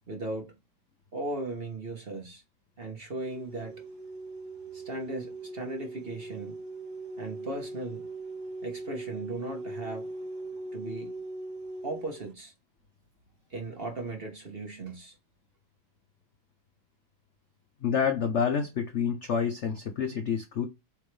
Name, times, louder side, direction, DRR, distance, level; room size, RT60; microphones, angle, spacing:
voice 1, 0.1-0.5 1.1-2.4 2.8-3.8 4.7-6.6 7.2-8.1 8.6-10.1 10.7-11.1 11.8-12.5 13.5-15.2, right 2 dB, 35° right, 1.3 m, -37 dB
sound 1, 3.2-12.3, right 2 dB, 55° right, 2.0 m, -40 dB
voice 2, 17.8-20.7, left 7 dB, 60° left, 0.7 m, -28 dB
7.9 x 3.6 x 3.3 m
omnidirectional pair, 2.1 m